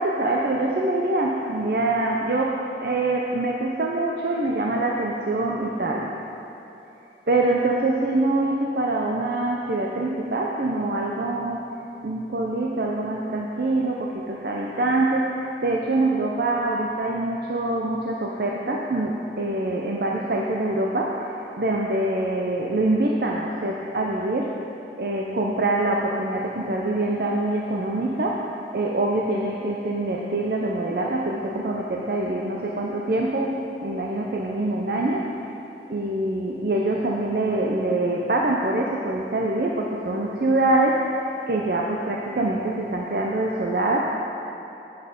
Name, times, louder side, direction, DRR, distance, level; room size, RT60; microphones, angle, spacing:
voice 1, 0.0-6.1 7.3-11.7 12.0-24.5 25.0-35.5 35.9-44.0, right 2 dB, 60° right, -1 dB, 0.5 m, -24 dB
9.0 x 6.3 x 5.2 m, 2.9 s
head